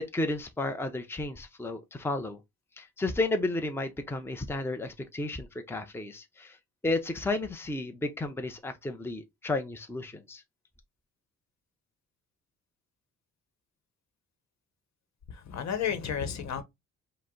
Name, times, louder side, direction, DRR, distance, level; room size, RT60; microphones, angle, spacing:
voice 1, 0.0-2.4 2.8-6.6 6.8-10.4, left 2 dB, 10° left, 0.7 m, -32 dB
voice 2, 15.3-16.6, left 8 dB, 65° left, 1.1 m, -32 dB
4.9 x 2.1 x 3.8 m
cardioid pair, 90°, 30 cm